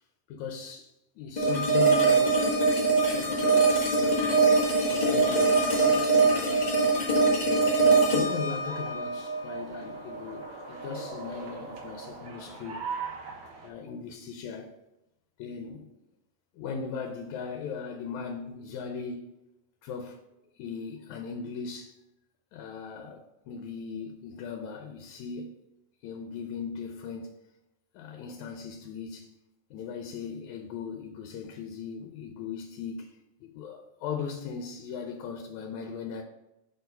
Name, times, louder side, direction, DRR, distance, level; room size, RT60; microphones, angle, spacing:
voice 1, 0.3-2.6 3.0-4.4 4.9-6.6 7.5-12.8 13.6-14.7 15.4-15.9 16.6-19.3 19.8-20.2 20.6-22.0 22.5-25.6 26.0-27.4 27.9-29.3 29.7-33.1 33.4-36.2, left 6 dB, 80° left, 2.0 m, -39 dB
sound 1, 1.4-10.4, right 3 dB, 50° left, 0.5 m, -23 dB
sound 2, 7.9-13.7, right 4 dB, 75° right, 2.8 m, -41 dB
6.1 x 4.6 x 5.3 m
omnidirectional pair, 3.4 m